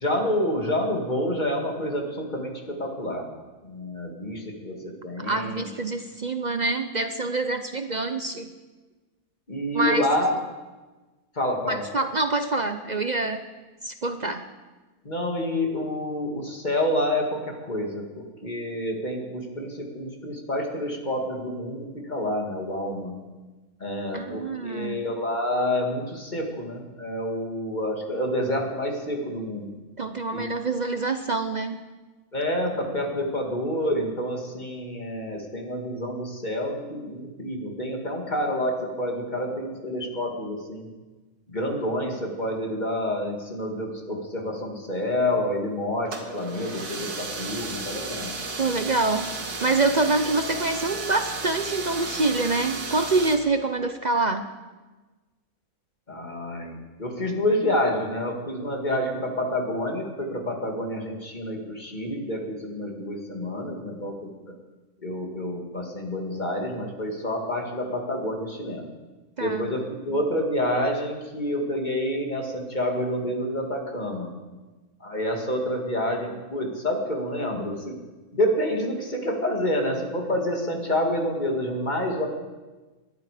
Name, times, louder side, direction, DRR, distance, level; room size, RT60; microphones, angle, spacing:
voice 1, 0.0-3.3 3.6-5.7 9.5-10.3 11.4-11.8 15.0-23.2 23.8-29.7 30.3-30.4 32.3-40.9 41.5-48.3 56.1-64.3 65.0-68.9 69.4-74.3 75.0-78.0 78.3-82.3, left 1 dB, 30° left, 2 dB, 2.4 m, -28 dB
voice 2, 5.2-8.5 9.7-10.1 11.7-13.4 13.8-14.4 24.1-25.0 30.0-31.8 48.6-49.3 49.6-54.5 69.4-69.7, right 3 dB, 45° right, 8 dB, 0.6 m, -26 dB
sound 1, 46.1-53.4, right 3 dB, 85° right, 2.3 m, -34 dB
20.0 x 12.0 x 5.0 m, 1.2 s
omnidirectional pair, 1.6 m